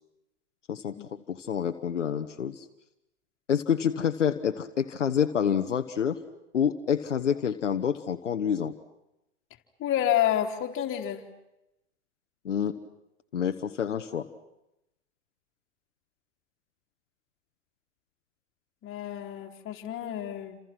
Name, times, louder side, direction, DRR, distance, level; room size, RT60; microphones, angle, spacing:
voice 1, 0.7-2.6 3.5-6.2 6.5-8.7 12.4-12.8 13.3-14.3, left 8 dB, 85° left, 7 dB, 1.4 m, -28 dB
voice 2, 9.8-11.3 18.8-20.6, left 11 dB, 35° left, 1 dB, 3.7 m, -29 dB
30.0 x 27.0 x 6.1 m, 0.87 s
hypercardioid pair, 95°, 36 cm